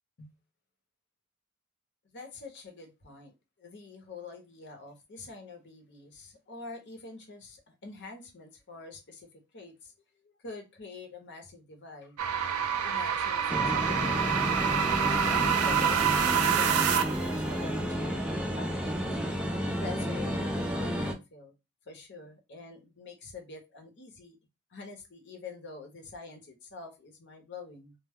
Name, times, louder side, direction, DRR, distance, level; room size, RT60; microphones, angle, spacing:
voice 1, 2.0-9.3 9.5-9.9 10.2-12.2 12.8-19.1 19.7-21.5 21.9-24.4 24.7-27.9, left 3 dB, 55° left, 4 dB, 0.8 m, -46 dB
sound 1, 12.2-17.3, right 7 dB, 80° right, 0.4 m, -27 dB
sound 2, 13.5-21.1, equal, 5° right, 0.3 m, -31 dB
2.2 x 2.0 x 3.4 m, 0.24 s
head